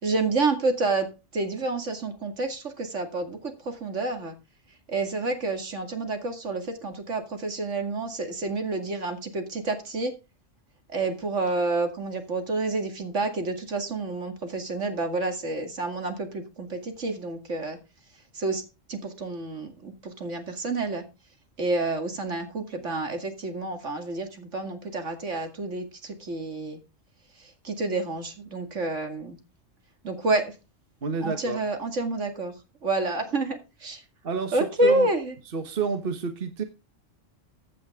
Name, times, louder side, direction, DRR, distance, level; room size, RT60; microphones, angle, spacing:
voice 1, 0.0-1.1 1.3-4.3 4.9-10.1 10.9-17.8 18.3-18.6 18.9-21.0 21.6-26.8 27.6-29.4 30.0-30.5 31.2-32.5 32.8-34.0 34.5-35.3, right 2 dB, 70° right, 2.6 m, -29 dB
voice 2, 31.0-31.6 34.2-35.1 35.4-36.6, right 5 dB, 50° right, 1.5 m, -29 dB
15.0 x 8.7 x 3.6 m
omnidirectional pair, 1.3 m